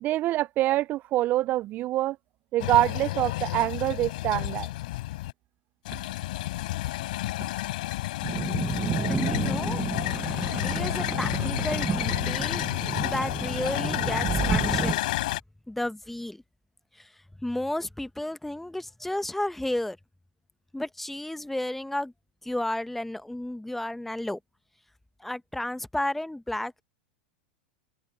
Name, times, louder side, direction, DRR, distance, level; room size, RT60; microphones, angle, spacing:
voice 1, 0.0-2.2 2.5-4.7, right 15 dB, 40° right, 0.5 m, -25 dB
sound 1, 2.6-5.3 5.8-15.4, left 17 dB, 65° left, 4.6 m, -30 dB
sound 2, 8.2-14.9, right 5 dB, 20° right, 1.2 m, -31 dB
voice 2, 9.1-9.8 10.1-10.2 10.5-12.7 13.0-15.0 15.7-16.4 17.0-17.1 17.4-20.0 20.7-22.1 22.4-24.4 25.2-26.8, left 1 dB, 5° left, 1.1 m, -32 dB
open air
hypercardioid pair, 95°, 5 cm